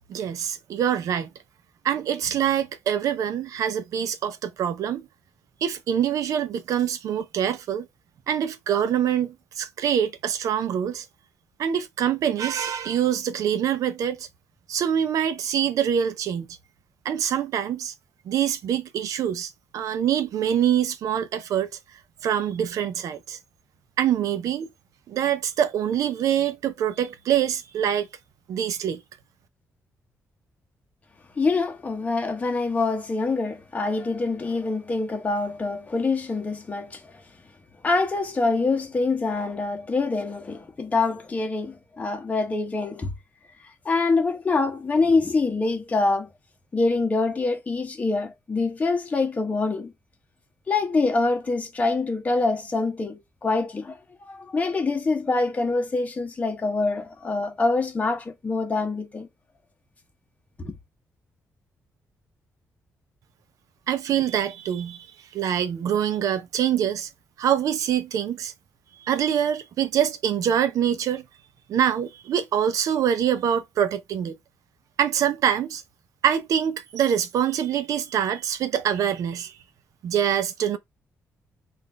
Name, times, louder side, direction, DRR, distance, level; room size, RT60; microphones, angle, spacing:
voice 1, 0.1-1.3 1.8-5.1 5.6-7.9 8.3-11.1 11.6-14.3 14.7-16.5 17.0-17.9 18.3-21.7 22.2-23.4 24.0-24.7 25.1-28.1 28.5-29.0 63.9-65.1 65.3-67.1 67.4-68.5 69.1-71.2 71.7-74.4 75.0-75.8 76.2-79.5 80.0-80.8, right 9 dB, 80° right, 0.6 m, -25 dB
voice 2, 31.4-37.0 37.8-43.1 43.8-46.3 46.7-49.9 50.7-54.0 54.2-59.3 60.6-60.7, left 3 dB, 25° left, 1.0 m, -25 dB
3.8 x 2.6 x 3.3 m
cardioid pair, 135°, 6 cm